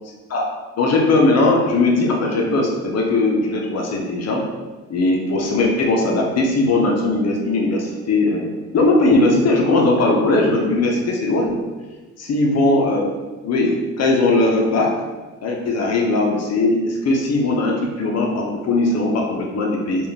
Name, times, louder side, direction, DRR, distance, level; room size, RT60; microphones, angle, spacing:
voice 1, 0.8-4.4 4.9-11.5 12.3-13.1 13.4-14.9 15.4-20.1, left 2 dB, 55° left, 0 dB, 0.7 m, -19 dB
3.7 x 2.4 x 3.4 m, 1.2 s
cardioid pair, 90°, 30 cm